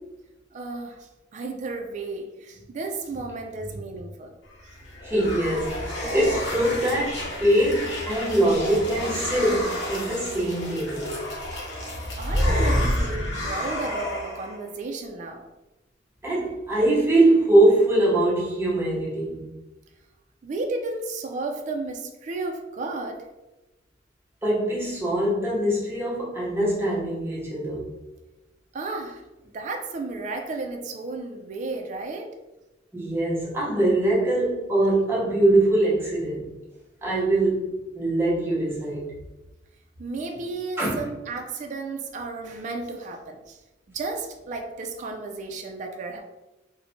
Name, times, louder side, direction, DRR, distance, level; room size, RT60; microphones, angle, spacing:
voice 1, 0.5-4.3 4.6-4.8 12.2-15.5 20.4-23.3 28.7-32.3 40.0-43.6 43.9-46.2, right 3 dB, 40° right, 2 dB, 0.3 m, -33 dB
sound 1, 4.6-14.6, left 1 dB, 75° left, 0.8 m, -29 dB
voice 2, 5.0-11.2 16.2-19.5 24.4-27.9 32.9-36.5 37.0-39.1 40.8-41.0, right 1 dB, 15° right, -5 dB, 0.7 m, -23 dB
3.0 x 2.1 x 2.5 m, 1.0 s
head